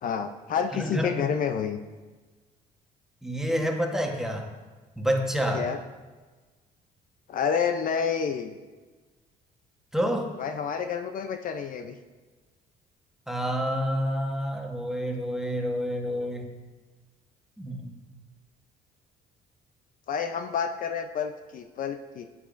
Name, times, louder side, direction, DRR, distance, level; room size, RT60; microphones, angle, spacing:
voice 1, 0.0-1.8 5.5-5.8 7.3-8.6 10.4-12.0 20.1-22.3, left 7 dB, 55° left, 7 dB, 0.5 m, -29 dB
voice 2, 0.7-1.1 3.2-4.5 5.0-5.7 9.9-10.3 13.3-16.5 17.6-18.0, equal, 5° right, 2 dB, 1.1 m, -28 dB
11.0 x 8.5 x 2.5 m, 1.3 s
cardioid pair, 110°, 17 cm